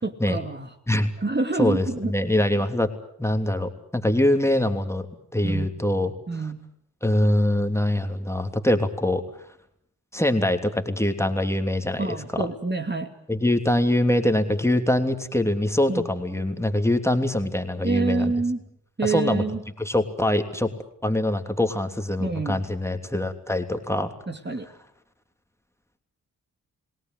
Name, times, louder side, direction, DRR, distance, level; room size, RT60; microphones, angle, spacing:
voice 1, 0.0-0.7 1.2-2.1 5.4-5.7 6.3-6.6 12.0-13.1 15.9-16.1 17.8-18.6 19.0-19.6 22.2-22.6 24.3-24.7, right 3 dB, 25° right, 5 dB, 2.5 m, -27 dB
voice 2, 1.6-2.9 3.2-5.1 5.3-6.1 7.0-9.2 10.1-12.5 13.3-18.3 19.0-19.4 19.8-20.7 21.0-24.1, left 1 dB, 5° left, 5 dB, 3.2 m, -23 dB
30.0 x 18.5 x 7.9 m, 0.72 s
supercardioid pair, 40°, 41 cm